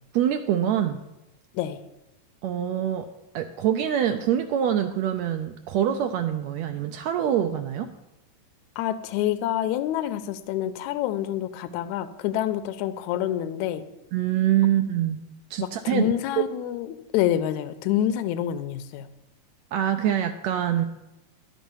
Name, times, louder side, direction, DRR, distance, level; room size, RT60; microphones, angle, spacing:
voice 1, 0.1-1.0 2.4-3.1 3.3-7.9 14.1-15.2 15.5-16.1 16.4-16.5 19.7-20.9, right 10 dB, 80° right, 6 dB, 1.7 m, -24 dB
voice 2, 8.8-13.8 15.6-19.1, left 11 dB, 80° left, 11 dB, 2.0 m, -27 dB
11.5 x 7.3 x 5.5 m, 0.97 s
omnidirectional pair, 3.5 m